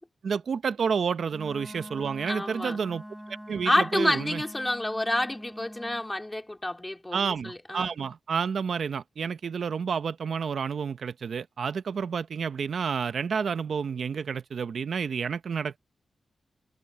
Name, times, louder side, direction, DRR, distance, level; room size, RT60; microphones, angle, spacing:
voice 1, 0.2-4.4 7.1-15.8, right 6 dB, 75° right, 0.7 m, -30 dB
Wind instrument woodwind instrument, 1.3-6.1, equal, 5° right, 3.6 m, -44 dB
voice 2, 2.3-2.8 3.7-7.9, left 1 dB, 15° left, 3.9 m, -28 dB
cardioid pair, 80°, 0 cm